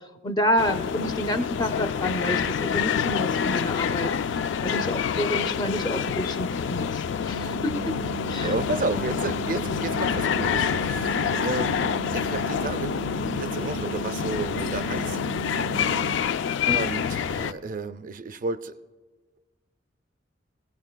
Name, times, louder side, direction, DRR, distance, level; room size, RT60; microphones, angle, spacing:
voice 1, 0.2-4.1 4.6-6.9 7.3-7.8 8.3-8.5 16.6-16.8, equal, 20° left, 9 dB, 0.6 m, -28 dB
sound 1, 0.6-17.5, left 7 dB, 75° left, 0.3 m, -27 dB
sound 2, 7.3-16.2, right 15 dB, 50° left, 1.4 m, -37 dB
voice 2, 8.4-15.2 16.7-18.8, right 3 dB, 45° right, 12 dB, 0.4 m, -32 dB
18.5 x 17.0 x 2.2 m, 1.3 s
head